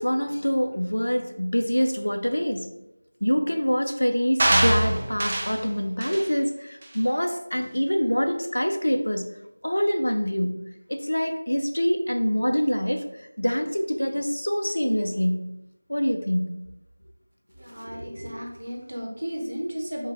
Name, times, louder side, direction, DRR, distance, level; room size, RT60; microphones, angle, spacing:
voice 1, 0.0-2.7 3.2-9.3 9.6-13.1 13.4-15.6 15.9-16.7, equal, 75° left, 0.4 m, -25 dB
sound 1, 4.4-5.6 6.0-6.3 6.8-7.0, right 1 dB, 25° right, 0.4 m, -23 dB
voice 2, 17.5-20.1, equal, 60° right, 0.9 m, -34 dB
3.7 x 2.2 x 3.6 m
figure-of-eight pair, 170°, 0 cm